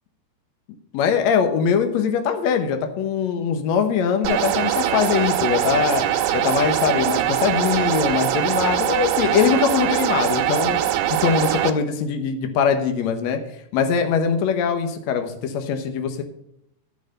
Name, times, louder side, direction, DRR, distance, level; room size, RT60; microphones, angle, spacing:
voice 1, 0.9-6.0 6.3-10.8 11.1-13.4 13.7-16.2, left 7 dB, 80° left, 6 dB, 1.6 m, -22 dB
sound 1, 4.2-11.7, right 12 dB, 75° right, 2.3 m, -22 dB
12.0 x 5.9 x 6.5 m, 0.76 s
omnidirectional pair, 4.6 m